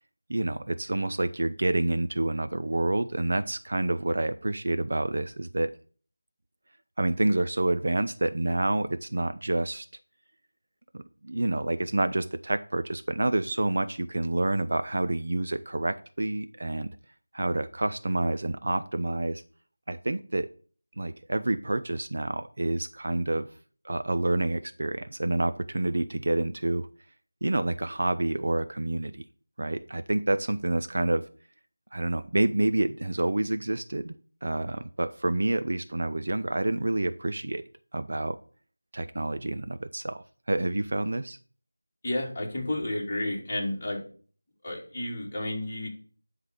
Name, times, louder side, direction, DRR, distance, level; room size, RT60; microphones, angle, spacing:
voice 1, 0.3-5.7 7.0-9.9 10.9-16.9 17.3-19.4 19.9-20.5 21.0-23.5 23.8-26.9 27.4-29.1 29.6-31.3 31.9-34.2 34.4-37.6 37.9-38.4 38.9-41.4, right 2 dB, 50° right, 10 dB, 0.6 m, -28 dB
voice 2, 42.0-44.0 44.6-45.9, left 1 dB, 20° left, -4 dB, 2.9 m, -31 dB
11.0 x 3.9 x 6.4 m, 0.43 s
figure-of-eight pair, 175°, 0 cm